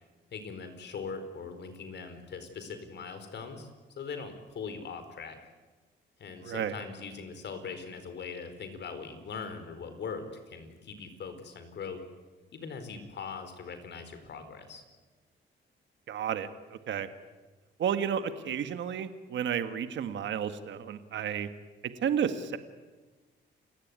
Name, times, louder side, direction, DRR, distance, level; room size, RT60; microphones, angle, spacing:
voice 1, 0.3-3.7 4.0-5.4 6.2-12.0 12.5-14.8, left 5 dB, 60° left, 9 dB, 4.5 m, -41 dB
voice 2, 6.4-6.7 16.1-17.1 17.8-21.5 22.0-22.6, right 8 dB, 70° right, 10 dB, 1.7 m, -32 dB
29.5 x 16.5 x 9.6 m, 1.3 s
cardioid pair, 90°, 20 cm